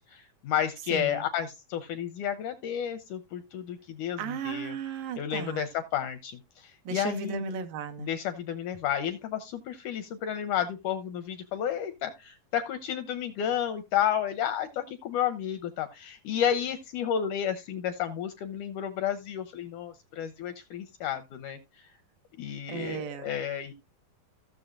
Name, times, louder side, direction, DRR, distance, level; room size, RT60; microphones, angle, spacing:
voice 1, 0.1-4.8 5.1-7.4 8.0-21.9 22.4-23.7, left 9 dB, 85° left, 1.8 m, -31 dB
voice 2, 0.9-1.2 4.2-5.6 6.9-8.1 22.7-23.3, right 6 dB, 75° right, 2.6 m, -35 dB
15.5 x 6.6 x 2.4 m
omnidirectional pair, 4.1 m